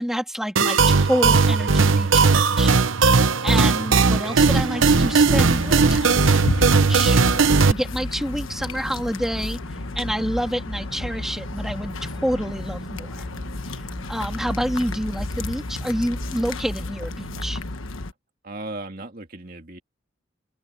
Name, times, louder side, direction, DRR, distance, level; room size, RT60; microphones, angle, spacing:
voice 1, 0.0-2.7 3.0-7.2 7.5-9.6 9.9-13.3 14.1-17.6, equal, ahead, 3.0 m, -28 dB
sound 1, 0.6-7.7, right 4 dB, 75° right, 0.9 m, -17 dB
sound 2, 4.9-18.1, left 2 dB, 85° left, 1.3 m, -32 dB
sound 3, 9.6-17.6, equal, 25° right, 1.9 m, -39 dB
voice 2, 18.4-19.8, right 2 dB, 45° right, 2.4 m, -36 dB
open air
head